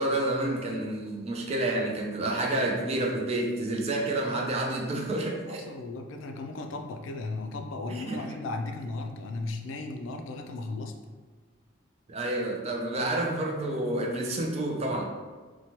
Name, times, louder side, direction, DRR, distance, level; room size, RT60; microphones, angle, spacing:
voice 1, 0.0-5.6 7.9-8.2 12.1-15.0, right 1 dB, 35° right, 1 dB, 0.3 m, -29 dB
voice 2, 5.5-11.0, left 3 dB, 75° left, 5 dB, 0.3 m, -36 dB
2.9 x 2.2 x 2.8 m, 1.4 s
head